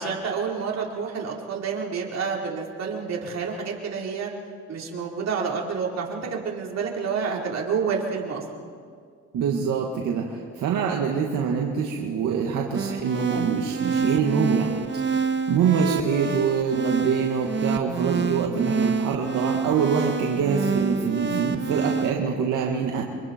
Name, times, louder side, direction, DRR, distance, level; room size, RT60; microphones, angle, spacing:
voice 1, 0.0-4.3 4.7-8.4 10.8-11.1, right 5 dB, 60° right, -2 dB, 4.5 m, -29 dB
voice 2, 9.3-23.0, right 6 dB, 85° right, 0 dB, 2.1 m, -25 dB
sound 1, 12.7-22.1, right 5 dB, 40° right, 1.6 m, -27 dB
29.5 x 25.0 x 4.6 m, 2.1 s
cardioid pair, 90°, 30 cm